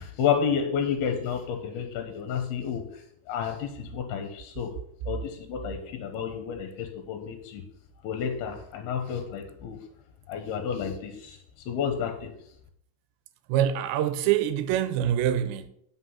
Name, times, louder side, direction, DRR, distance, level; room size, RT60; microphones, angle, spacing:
voice 1, 0.0-4.7 5.1-7.6 8.0-9.8 10.3-11.4 11.7-12.3, left 7 dB, 70° left, 2.7 m, -30 dB
voice 2, 13.5-15.7, right 10 dB, 85° right, 2.8 m, -25 dB
9.7 x 6.2 x 5.6 m
omnidirectional pair, 5.0 m